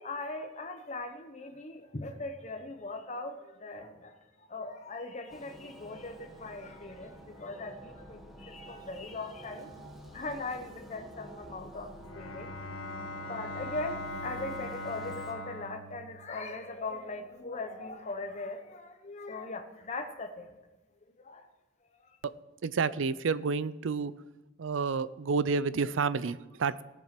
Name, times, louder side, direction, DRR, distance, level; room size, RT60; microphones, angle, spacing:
voice 1, 0.0-9.7 10.1-11.9 12.1-12.6 13.3-20.5 21.2-21.5, left 2 dB, 35° left, 5 dB, 0.9 m, -40 dB
sound 1, 5.3-15.3, right 1 dB, ahead, 1.5 m, -49 dB
Bowed string instrument, 11.9-16.8, left 2 dB, 85° left, 1.4 m, -41 dB
voice 2, 22.6-24.1 24.6-26.8, right 5 dB, 70° right, 16 dB, 0.5 m, -30 dB
17.5 x 7.5 x 5.9 m, 1.1 s
head